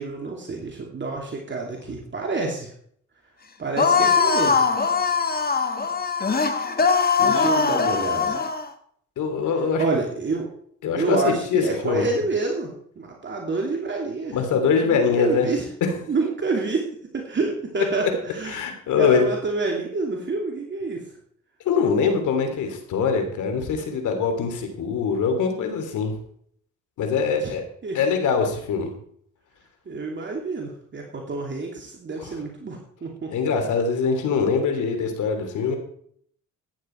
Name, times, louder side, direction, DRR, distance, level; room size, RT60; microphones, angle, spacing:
voice 1, 0.0-2.7 3.6-4.6 7.2-8.4 9.8-10.5 11.0-12.7 13.0-14.4 14.8-15.7 16.1-16.8 17.1-18.6 19.0-21.0 27.4-27.5 27.8-28.0 29.9-33.3, right 3 dB, 40° right, 0 dB, 2.8 m, -28 dB
sound 1, 3.8-8.7, left 5 dB, 30° left, 1.5 m, -21 dB
voice 2, 9.2-9.8 10.8-12.1 14.3-15.5 15.8-15.9 18.5-19.3 21.6-26.1 27.0-27.6 27.9-28.9 32.2-32.3 33.3-35.8, left 5 dB, 80° left, 5 dB, 3.3 m, -23 dB
14.0 x 10.0 x 4.6 m, 0.63 s
cardioid pair, 90°, 30 cm